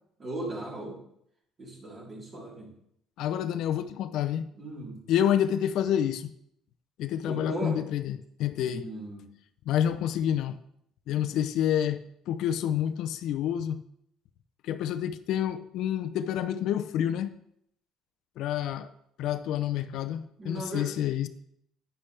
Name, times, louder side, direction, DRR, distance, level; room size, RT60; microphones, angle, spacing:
voice 1, 0.2-1.0 1.6-2.7 4.6-5.0 7.3-7.8 8.6-9.3 20.4-20.9, right 1 dB, 30° right, 4.0 m, -37 dB
voice 2, 3.2-4.5 5.1-6.3 7.0-8.8 9.7-10.6 11.1-13.8 14.6-17.3 18.4-18.9 19.2-21.3, left 10 dB, 70° left, 0.6 m, -28 dB
10.0 x 9.9 x 3.4 m
cardioid pair, 115°, 0 cm